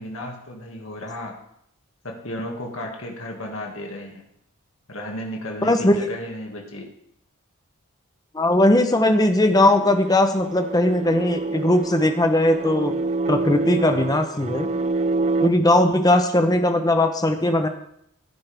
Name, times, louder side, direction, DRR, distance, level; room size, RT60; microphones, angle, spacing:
voice 1, 0.0-1.4 2.0-4.3 4.9-6.9, left 1 dB, 65° left, 0 dB, 2.2 m, -33 dB
voice 2, 5.6-6.1 8.3-12.9 13.3-14.7 15.4-17.7, left 1 dB, 15° left, 7 dB, 0.9 m, -19 dB
sound 1, 9.5-15.5, right 3 dB, 30° right, 0.4 m, -27 dB
16.0 x 9.7 x 3.5 m, 0.74 s
head